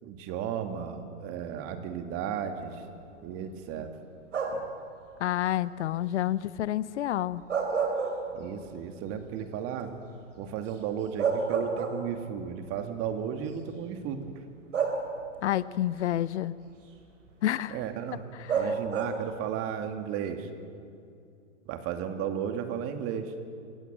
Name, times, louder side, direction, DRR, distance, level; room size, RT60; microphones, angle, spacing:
voice 1, 0.0-2.9 3.2-3.9 4.5-4.7 8.3-9.9 10.4-14.2 17.7-18.2 18.5-20.5 21.7-23.3, right 8 dB, 40° right, 7 dB, 2.4 m, -34 dB
sound 1, 4.3-4.8 7.3-8.7 9.1-9.2 10.7-10.8 11.2-12.3 13.3-13.5 14.7-15.4 18.5-19.4, right 5 dB, 80° right, 3.9 m, -29 dB
voice 2, 5.2-7.4 15.4-16.5 17.4-17.8, left 12 dB, 70° left, 18 dB, 0.8 m, -28 dB
27.0 x 15.5 x 7.6 m, 2.5 s
hypercardioid pair, 115°, 36 cm